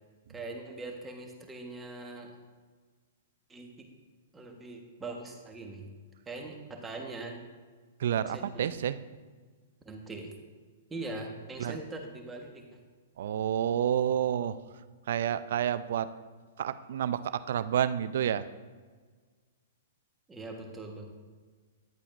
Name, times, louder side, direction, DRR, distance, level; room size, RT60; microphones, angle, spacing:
voice 1, 0.3-2.4 3.5-3.9 4.3-5.9 6.3-7.4 8.3-8.7 9.8-10.3 10.9-12.8 20.3-21.1, right 2 dB, 15° right, 2 dB, 1.3 m, -41 dB
voice 2, 8.0-9.0 11.6-11.7 13.2-14.6 15.1-16.1 16.6-18.4, right 9 dB, 65° right, 14 dB, 0.4 m, -29 dB
10.5 x 8.3 x 2.6 m, 1.5 s
hypercardioid pair, 115°, 0 cm